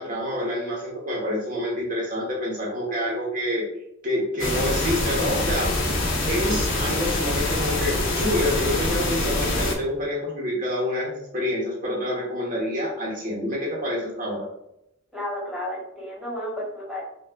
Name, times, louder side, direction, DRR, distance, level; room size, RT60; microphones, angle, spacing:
voice 1, 0.0-3.6 4.0-5.7 6.3-14.5, left 1 dB, 40° right, -4 dB, 1.0 m, -27 dB
sound 1, 4.4-9.7, left 2 dB, 65° left, 0.9 m, -25 dB
voice 2, 15.1-17.0, left 1 dB, ahead, -6 dB, 1.5 m, -32 dB
5.5 x 2.4 x 2.4 m, 0.80 s
head